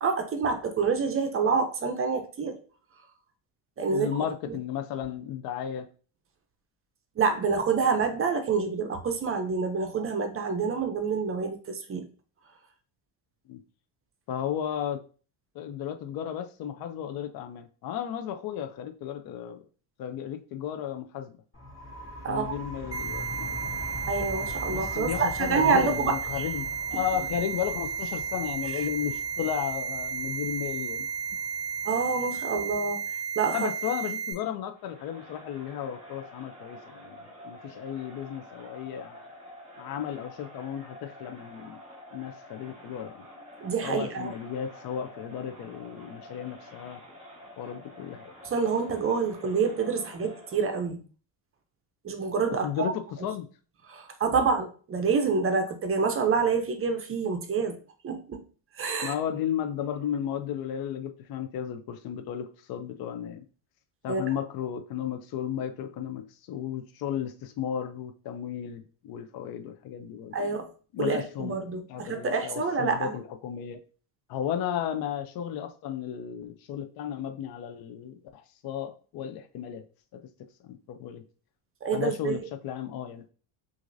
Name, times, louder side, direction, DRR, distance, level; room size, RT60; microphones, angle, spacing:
voice 1, 0.0-2.6 3.8-4.1 4.5-4.6 7.2-12.1 22.2-22.5 24.1-26.1 31.8-33.0 33.4-33.7 43.6-44.3 48.4-51.0 52.0-52.9 53.9-57.8 58.0-58.4 58.8-59.1 64.1-64.2 70.3-70.7 71.0-73.2 81.8-82.4, right 5 dB, 30° right, 0.5 m, -27 dB
voice 2, 3.9-5.9 13.5-13.6 14.3-15.0 15.5-19.6 20.0-21.4 22.3-23.5 24.7-31.1 33.5-37.2 37.4-39.2 39.8-41.8 42.1-43.3 43.8-47.0 47.6-48.3 52.6-53.5 59.0-63.4 64.0-70.4 70.9-71.6 71.9-73.8 74.3-79.8 80.1-80.2 80.6-81.2 81.9-83.3, left 9 dB, 50° left, 0.5 m, -34 dB
sound 1, 21.5-32.9, equal, 30° left, 2.2 m, -42 dB
sound 2, 22.9-34.3, right 7 dB, 10° left, 2.0 m, -33 dB
Crowd, 34.7-50.9, equal, 15° right, 1.3 m, -48 dB
6.0 x 2.6 x 2.6 m
cardioid pair, 140°, 47 cm